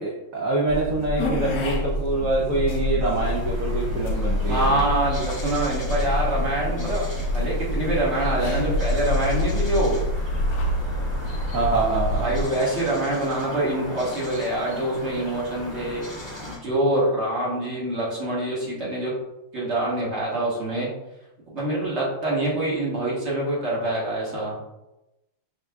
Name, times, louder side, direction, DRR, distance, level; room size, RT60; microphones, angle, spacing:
voice 1, 0.0-4.9 11.5-12.3, right 2 dB, 80° right, -4 dB, 0.7 m, -25 dB
sound 1, 0.7-12.4, left 1 dB, 75° left, 0.9 m, -26 dB
sound 2, 3.2-16.6, left 1 dB, 20° left, 0.8 m, -38 dB
voice 2, 4.5-9.9 12.0-16.0 16.4-19.1 19.5-20.9 21.5-24.6, right 1 dB, 40° right, -6 dB, 1.3 m, -25 dB
5.1 x 3.5 x 2.2 m, 0.95 s
omnidirectional pair, 2.3 m